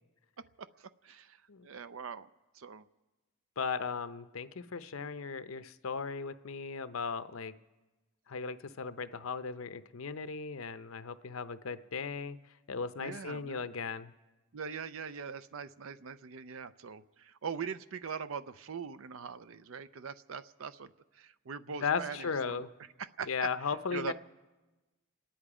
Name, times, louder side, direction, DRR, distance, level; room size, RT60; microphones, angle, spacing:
voice 1, 0.6-2.3 2.5-2.9 13.0-13.6 14.5-22.6 23.0-24.1, right 6 dB, 70° right, 13 dB, 0.5 m, -42 dB
voice 2, 3.6-7.5 8.3-12.4 12.7-14.1 21.8-22.7 23.3-24.1, left 5 dB, 75° left, 12 dB, 0.7 m, -36 dB
28.5 x 10.5 x 4.9 m, 1.2 s
head